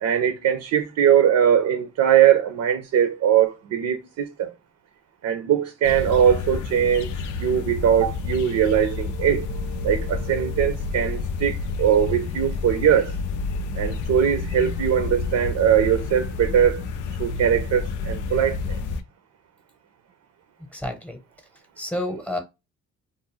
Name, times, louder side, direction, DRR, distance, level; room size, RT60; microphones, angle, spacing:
voice 1, 0.0-4.5 5.2-7.1 7.4-9.5 9.8-13.1 13.8-16.8 17.2-18.6, right 9 dB, 65° right, 0.6 m, -21 dB
sound 1, 5.8-19.0, left 4 dB, 80° left, 0.5 m, -29 dB
voice 2, 20.7-21.2 21.8-22.4, left 1 dB, 5° left, 0.9 m, -29 dB
2.5 x 2.2 x 2.9 m
cardioid pair, 90°, 30 cm